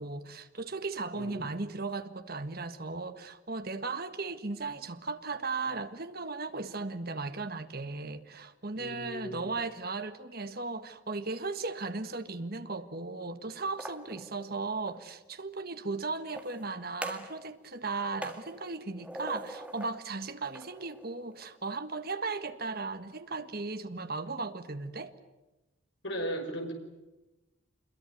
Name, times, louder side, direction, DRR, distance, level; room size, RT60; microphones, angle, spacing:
voice 1, 0.0-25.1, right 3 dB, 50° right, 1.6 m, -36 dB
voice 2, 8.7-9.5 26.0-26.7, right 1 dB, 65° left, 5.3 m, -36 dB
sound 1, 13.6-15.1 16.2-17.4 17.7-20.0 20.4-21.7, right 1 dB, 5° right, 1.9 m, -44 dB
26.5 x 22.0 x 9.3 m
head